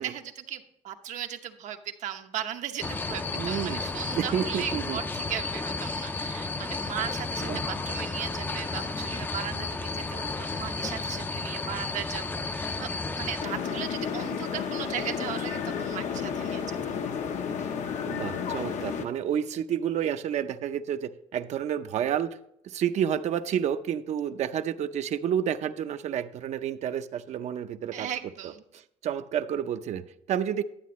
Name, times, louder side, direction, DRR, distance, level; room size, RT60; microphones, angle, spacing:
voice 1, 0.0-12.9 13.2-17.0 27.9-28.6, right 10 dB, 85° right, 5 dB, 0.9 m, -37 dB
sound 1, 2.8-13.4, left 3 dB, 15° left, 0.4 m, -32 dB
voice 2, 3.3-3.8 4.1-5.0 7.4-7.6 18.1-22.4 22.6-28.1 28.4-30.6, right 9 dB, 70° right, 9 dB, 0.6 m, -30 dB
sound 2, 13.4-19.0, left 7 dB, 80° left, 0.9 m, -32 dB
11.5 x 8.5 x 3.0 m, 0.75 s
cardioid pair, 150°, 12 cm